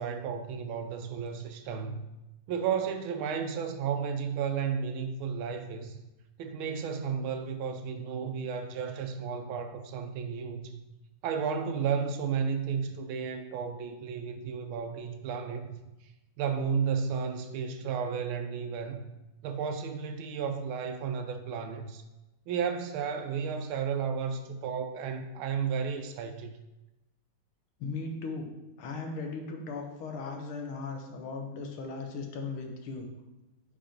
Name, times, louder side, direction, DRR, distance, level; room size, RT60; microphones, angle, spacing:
voice 1, 0.0-2.0 2.5-6.0 6.4-10.8 11.2-15.7 16.4-19.1 19.4-22.0 22.5-26.5, right 6 dB, 80° right, 1.4 m, -33 dB
voice 2, 27.8-28.5 28.8-33.1, left 4 dB, 75° left, 1.8 m, -37 dB
5.4 x 5.2 x 5.1 m
omnidirectional pair, 2.3 m